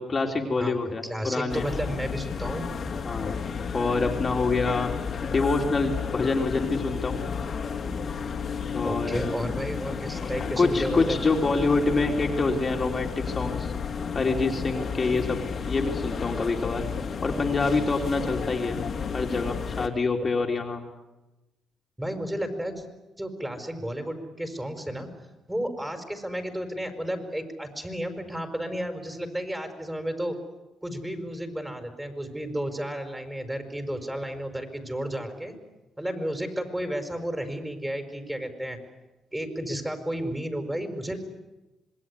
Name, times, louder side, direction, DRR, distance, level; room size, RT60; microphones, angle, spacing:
voice 1, 0.0-1.6 3.0-3.4 3.7-4.9 5.2-7.2 8.6-9.5 10.6-13.7 14.1-15.4 15.7-16.8 17.2-18.8 19.1-20.8, left 3 dB, 35° left, 1 dB, 3.4 m, -26 dB
voice 2, 0.6-2.6 8.8-11.2 22.0-22.9 23.2-25.1 25.5-30.4 30.8-35.5 36.0-38.8 39.3-41.2, right 1 dB, 10° right, 7 dB, 5.4 m, -32 dB
sound 1, 1.5-19.9, left 6 dB, 50° left, 3.0 m, -32 dB
26.5 x 21.0 x 9.8 m, 1.0 s
cardioid pair, 90°, 0 cm